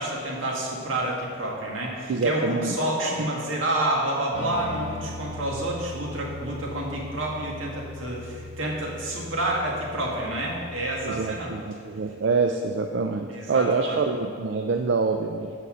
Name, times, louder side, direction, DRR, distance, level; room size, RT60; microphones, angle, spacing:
voice 1, 0.0-11.5 13.3-14.0, right 1 dB, 80° right, -2 dB, 1.8 m, -29 dB
voice 2, 2.1-2.8 3.2-3.3 11.0-15.5, right 4 dB, 60° right, 5 dB, 0.4 m, -26 dB
sound 1, 4.3-11.4, left 1 dB, 30° right, 1.1 m, -40 dB
8.1 x 5.6 x 6.2 m, 2.3 s
head